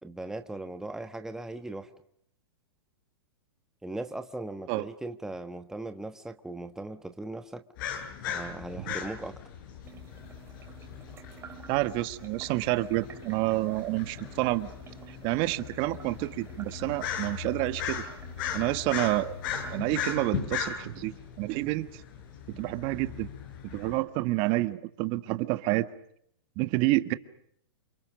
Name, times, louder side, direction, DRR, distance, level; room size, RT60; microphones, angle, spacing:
voice 1, 0.0-1.9 3.8-7.6 8.3-9.4, right 2 dB, 5° right, 8 dB, 1.2 m, -38 dB
sound 1, 7.8-24.0, left 8 dB, 55° left, 7.3 m, -38 dB
sound 2, 9.8-19.8, right 7 dB, 20° right, 3.7 m, -50 dB
voice 2, 11.7-14.7 15.1-18.0 18.5-19.3 19.7-21.9 22.5-23.3 23.6-25.9 26.6-27.1, right 19 dB, 40° right, 12 dB, 1.4 m, -29 dB
29.0 x 26.0 x 6.4 m, 0.69 s
hypercardioid pair, 125°, 13 cm